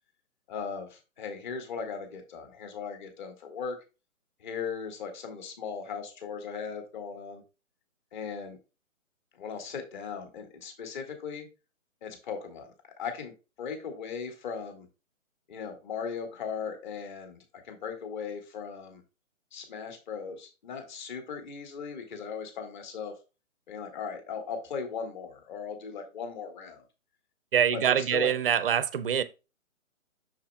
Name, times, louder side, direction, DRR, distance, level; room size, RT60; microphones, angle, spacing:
voice 1, 0.5-3.8 4.4-7.4 8.1-8.6 9.3-11.5 12.0-13.3 13.6-14.9 15.5-19.0 19.5-23.2 23.7-26.8 27.7-28.3, left 6 dB, 35° left, 1.8 m, -38 dB
voice 2, 27.5-29.2, right 8 dB, 45° right, 0.6 m, -25 dB
7.2 x 6.5 x 2.3 m
hypercardioid pair, 145°, 41 cm